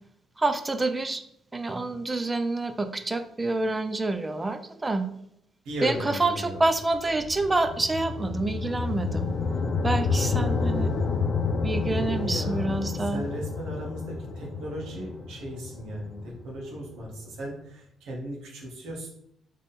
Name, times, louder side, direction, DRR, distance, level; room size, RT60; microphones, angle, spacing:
voice 1, 0.4-1.2 1.5-5.1 5.8-9.3 9.8-10.9 11.6-13.2, right 2 dB, 20° right, 8 dB, 0.5 m, -27 dB
voice 2, 5.6-6.6 11.7-19.1, right 1 dB, 85° right, -2 dB, 1.4 m, -36 dB
sound 1, 6.8-17.1, left 4 dB, 55° left, 0.7 m, -29 dB
3.6 x 3.2 x 4.1 m, 0.76 s
cardioid pair, 90°, 0 cm